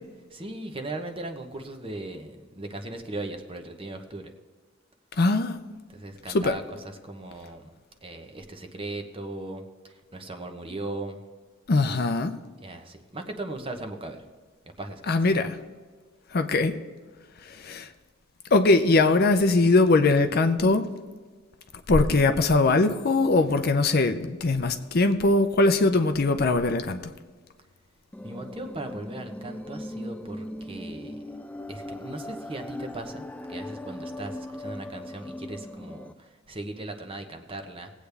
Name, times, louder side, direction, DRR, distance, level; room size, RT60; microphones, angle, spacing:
voice 1, 0.3-4.2 5.9-7.7 8.0-11.2 12.6-14.3 14.8-15.3 28.2-31.2 31.7-33.2 33.5-37.9, right 2 dB, 25° right, 5 dB, 0.9 m, -38 dB
voice 2, 5.2-5.6 6.3-6.6 11.7-12.4 15.1-15.6 16.3-16.7 17.5-17.9 18.5-20.9 21.9-27.0, left 3 dB, 50° left, 8 dB, 0.6 m, -21 dB
sound 1, 28.1-36.1, left 1 dB, 5° left, 0.3 m, -39 dB
19.5 x 8.3 x 3.4 m, 1.5 s
head